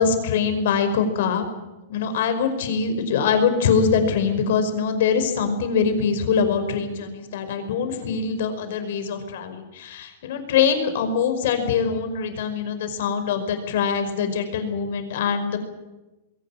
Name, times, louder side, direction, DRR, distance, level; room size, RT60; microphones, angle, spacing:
voice 1, 0.0-1.5 1.9-15.6, left 6 dB, 60° left, 8 dB, 5.3 m, -23 dB
22.0 x 18.0 x 9.0 m, 1.0 s
supercardioid pair, 170°, 0 cm